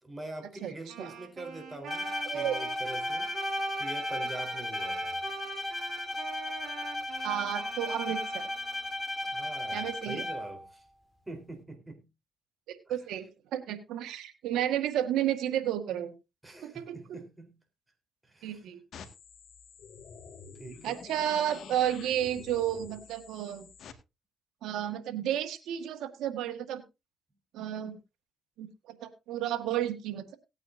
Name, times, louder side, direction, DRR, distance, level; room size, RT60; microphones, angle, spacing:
voice 1, 0.0-5.3 9.3-10.9 11.3-12.0 12.9-13.0 16.4-17.6 18.2-18.6 20.5-21.0, right 2 dB, 15° right, 3.7 m, -44 dB
Wind instrument woodwind instrument, 0.9-9.0, right 7 dB, 60° right, 5.2 m, -45 dB
Bowed string instrument, 1.9-10.6, left 1 dB, 25° left, 2.7 m, -35 dB
voice 2, 2.2-2.6 7.2-8.5 9.7-10.3 12.7-13.3 13.5-16.1 16.6-17.0 18.4-18.8 20.8-23.7 24.6-26.8 27.5-28.0 28.6-30.4, right 11 dB, 85° right, 1.5 m, -32 dB
sound 1, 18.9-23.9, left 6 dB, 65° left, 1.7 m, -48 dB
18.5 x 9.0 x 2.6 m
cardioid pair, 90°, 0 cm